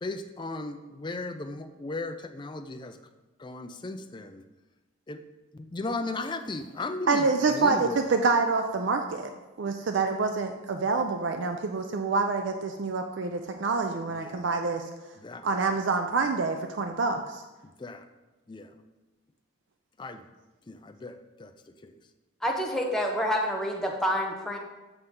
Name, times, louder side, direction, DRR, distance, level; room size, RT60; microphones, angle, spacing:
voice 1, 0.0-3.0 3.4-4.4 5.1-5.2 5.5-7.3 7.5-8.0 14.1-14.6 15.2-15.5 17.6-18.1 18.5-18.7 20.0-20.3 20.7-21.5 21.8-21.9, left 2 dB, 20° left, 7 dB, 0.4 m, -36 dB
voice 2, 7.1-9.3 9.6-14.9 15.4-17.4, right 4 dB, 60° right, 5 dB, 0.4 m, -27 dB
voice 3, 22.4-24.6, equal, ahead, 0 dB, 0.8 m, -28 dB
7.9 x 5.5 x 3.7 m, 1.1 s
head